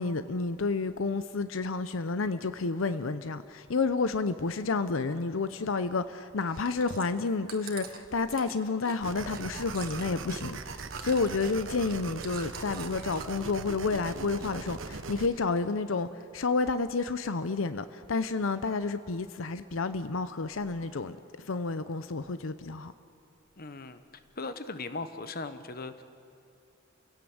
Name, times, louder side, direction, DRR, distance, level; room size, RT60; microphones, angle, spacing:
voice 1, 0.0-16.1 16.3-22.9, left 4 dB, 90° left, 0.7 m, -30 dB
Chewing mastication, 6.4-13.5 13.8-14.5 14.8-15.7 16.2-16.3, right 6 dB, 50° right, 1.9 m, -46 dB
sound 1, 9.0-15.3, right 4 dB, 70° right, 1.1 m, -40 dB
voice 2, 23.6-24.0 24.4-26.0, left 3 dB, 50° left, 1.2 m, -38 dB
29.0 x 17.0 x 7.9 m
head